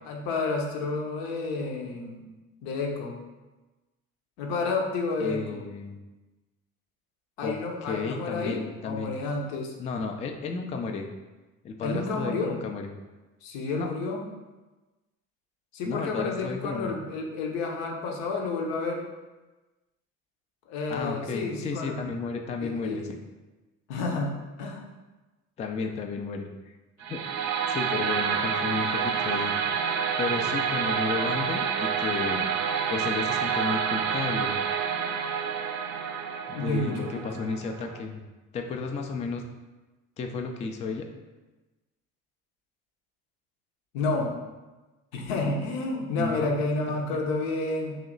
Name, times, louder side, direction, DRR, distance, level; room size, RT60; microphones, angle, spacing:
voice 1, 0.0-2.2 2.6-3.2 4.4-5.6 7.4-9.7 11.8-12.5 13.4-14.2 15.7-19.0 20.7-22.0 22.6-23.0 23.9-24.8 36.5-37.2 43.9-44.3 45.1-48.0, left 3 dB, 65° left, 1 dB, 0.8 m, -30 dB
voice 2, 5.2-6.0 7.4-7.5 7.9-9.1 9.8-11.1 11.6-12.9 13.8-13.9 15.8-16.9 20.9-23.2 25.6-26.7 27.1-27.2 27.7-29.5 30.2-32.5 32.9-34.6 36.5-38.2 38.5-39.4 40.2-41.0 46.2-46.6, left 4 dB, 20° left, 4 dB, 0.3 m, -33 dB
sound 1, 27.0-38.0, right 7 dB, 45° right, 0.5 m, -28 dB
3.1 x 2.8 x 3.8 m, 1.2 s
figure-of-eight pair, 50°, 40 cm